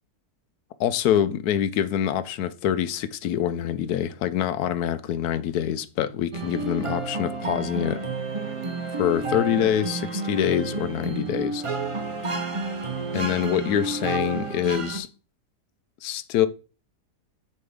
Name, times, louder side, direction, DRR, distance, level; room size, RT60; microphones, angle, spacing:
voice 1, 0.8-8.0 8.9-11.6 13.1-15.1 16.0-16.5, left 10 dB, 80° left, 1.1 m, -25 dB
sound 1, 6.3-15.0, right 3 dB, 35° right, 0.5 m, -30 dB
9.9 x 4.3 x 3.6 m
omnidirectional pair, 1.7 m